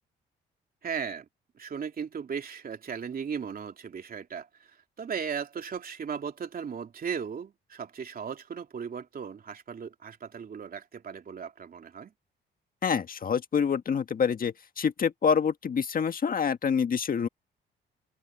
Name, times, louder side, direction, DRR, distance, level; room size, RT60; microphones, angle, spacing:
voice 1, 0.8-1.3 1.6-4.7 5.0-12.1, right 6 dB, 45° right, 3.1 m, -37 dB
voice 2, 12.8-17.3, left 6 dB, 45° left, 1.6 m, -27 dB
open air
cardioid pair, 90°, 20 cm